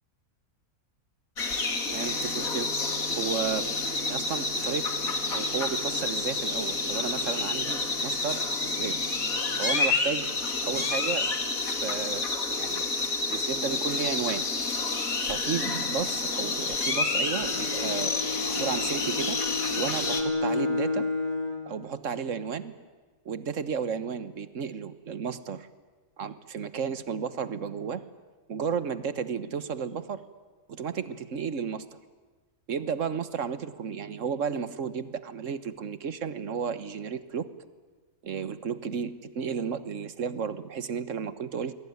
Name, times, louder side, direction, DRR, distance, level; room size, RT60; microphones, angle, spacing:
sound 1, 1.4-20.2, left 3 dB, 65° left, 2.8 m, -29 dB
voice 1, 1.8-11.4 11.8-14.5 15.2-19.4 19.7-21.1 21.7-22.7 23.2-25.7 26.2-28.0 28.5-30.2 30.7-31.9 32.7-37.5 38.2-41.7, right 6 dB, 55° right, 13 dB, 1.5 m, -33 dB
Bowed string instrument, 17.0-21.7, left 3 dB, 25° left, 3.9 m, -32 dB
28.5 x 22.0 x 9.6 m, 1.3 s
omnidirectional pair, 1.6 m